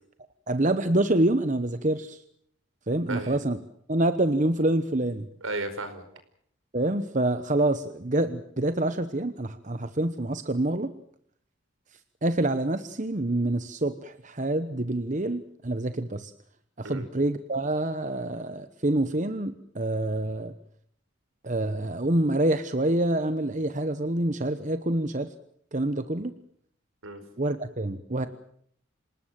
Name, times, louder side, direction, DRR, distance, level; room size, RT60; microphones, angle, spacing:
voice 1, 0.5-2.2 2.9-3.6 3.9-5.3 6.7-10.9 12.2-16.3 16.8-20.5 21.4-25.3 25.7-26.3 27.4-28.3, right 1 dB, 35° right, 11 dB, 1.0 m, -26 dB
voice 2, 5.4-6.0 16.8-17.1 27.0-27.2, right 2 dB, 70° right, 10 dB, 4.9 m, -34 dB
27.0 x 19.0 x 7.6 m, 0.67 s
head